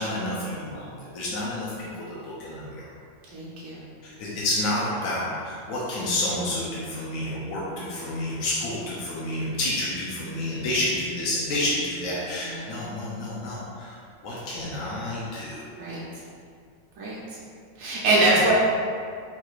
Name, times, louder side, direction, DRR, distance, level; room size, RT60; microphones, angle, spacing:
voice 1, 0.0-2.8 4.0-14.0 14.2-15.8 18.2-18.5, left 1 dB, 80° left, -7 dB, 1.2 m, -29 dB
voice 2, 3.3-3.9 12.4-12.7 15.8-16.0 17.0-17.2 17.8-18.5, right 2 dB, 75° right, -7 dB, 1.2 m, -23 dB
4.6 x 4.1 x 2.4 m, 2.2 s
omnidirectional pair, 1.4 m